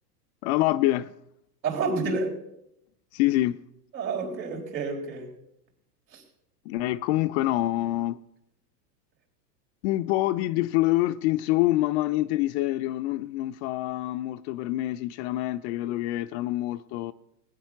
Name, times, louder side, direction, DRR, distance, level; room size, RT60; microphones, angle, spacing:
voice 1, 0.4-1.1 3.1-3.6 6.7-8.2 9.8-17.1, left 16 dB, 45° left, 0.5 m, -26 dB
voice 2, 1.6-2.4 3.9-5.3 6.1-6.2, right 4 dB, 85° right, 4.1 m, -29 dB
19.0 x 8.8 x 5.8 m
hypercardioid pair, 110°, 50 cm